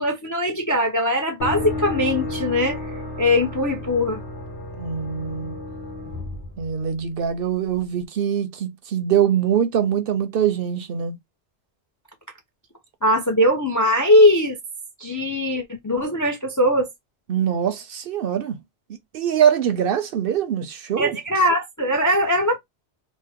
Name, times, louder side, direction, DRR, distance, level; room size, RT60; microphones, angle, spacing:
voice 1, 0.0-2.8 3.2-4.2 13.0-14.6 15.0-16.9 21.0-22.6, left 1 dB, 30° left, 0.4 m, -20 dB
sound 1, 1.4-7.3, left 2 dB, 85° left, 1.1 m, -32 dB
voice 2, 4.8-5.5 6.6-11.2 17.3-18.6 19.1-21.2, right 9 dB, 60° right, 0.7 m, -23 dB
3.1 x 2.1 x 3.4 m
omnidirectional pair, 1.1 m